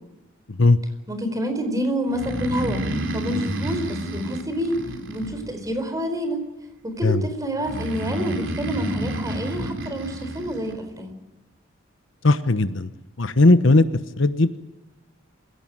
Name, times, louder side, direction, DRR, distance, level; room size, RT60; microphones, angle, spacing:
voice 1, 0.5-0.8 7.0-7.3 12.2-12.9 13.2-13.9 14.2-14.6, left 2 dB, 70° left, 12 dB, 1.1 m, -17 dB
voice 2, 1.1-2.8 3.1-4.8 5.1-6.4 6.8-11.1, equal, 20° right, 7 dB, 4.7 m, -28 dB
Breathing, 2.1-5.8 7.6-10.7, equal, 65° right, 4.1 m, -30 dB
27.5 x 17.0 x 9.0 m, 1.0 s
head